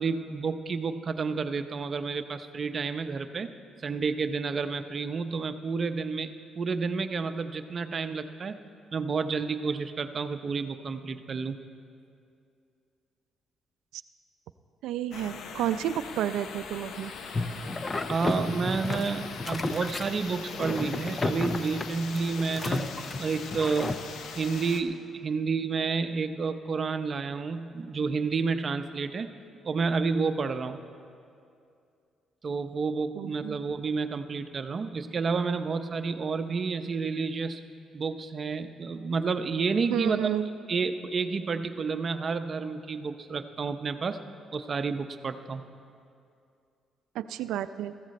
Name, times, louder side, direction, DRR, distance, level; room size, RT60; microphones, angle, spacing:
voice 1, 0.0-3.5 3.8-8.6 8.9-11.6 18.1-22.9 23.2-24.0 24.4-29.3 29.6-30.8 32.4-37.6 37.9-40.2 40.7-44.2 44.5-45.6, right 4 dB, 45° right, 9 dB, 0.6 m, -30 dB
voice 2, 14.8-17.1 33.1-33.6 39.9-40.5 47.1-47.9, right 11 dB, 90° right, 13 dB, 0.4 m, -31 dB
sound 1, 15.1-24.8, left 5 dB, 70° left, 0.8 m, -41 dB
sound 2, 17.3-24.0, left 2 dB, 30° left, 0.7 m, -33 dB
14.5 x 14.0 x 4.2 m, 2.4 s
cardioid pair, 90°, 0 cm